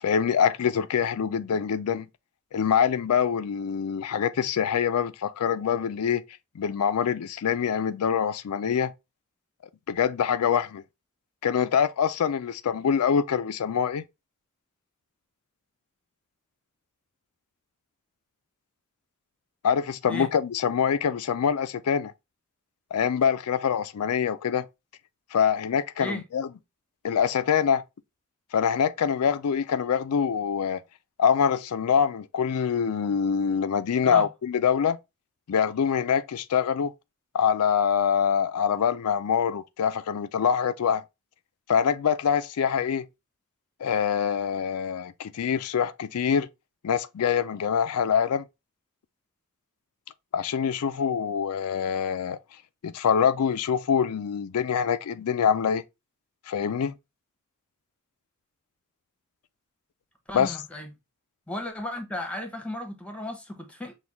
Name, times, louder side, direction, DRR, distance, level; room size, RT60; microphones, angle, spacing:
voice 1, 0.0-2.1 2.5-6.2 6.6-8.9 9.9-10.8 11.4-14.0 19.6-22.1 22.9-24.7 25.3-26.5 27.0-27.8 28.5-30.8 31.2-35.0 35.5-36.9 37.3-41.0 41.7-43.1 43.8-46.5 46.8-48.4 50.3-52.4 52.8-55.8 56.5-56.9 60.3-60.6, left 7 dB, 90° left, 0.4 m, -25 dB
voice 2, 60.3-60.9 61.5-63.9, left 1 dB, 5° left, 1.0 m, -35 dB
6.0 x 2.3 x 3.4 m
head